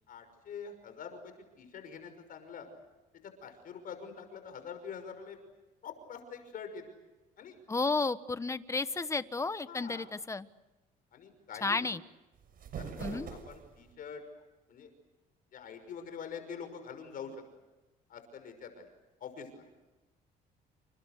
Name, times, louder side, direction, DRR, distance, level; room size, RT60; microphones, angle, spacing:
voice 1, 0.1-2.7 3.2-5.4 5.8-6.8 7.4-7.6 9.7-10.1 11.1-11.9 12.8-14.2 14.7-14.9 15.5-17.4 18.1-18.9 19.2-19.8, left 6 dB, 55° left, 8 dB, 6.0 m, -45 dB
voice 2, 7.7-10.5 11.6-12.0 13.0-13.3, left 3 dB, 15° left, 13 dB, 1.2 m, -32 dB
sound 1, 12.3-13.9, right 6 dB, 55° right, 6.6 m, -43 dB
29.5 x 29.0 x 6.7 m, 1.1 s
cardioid pair, 110°, 17 cm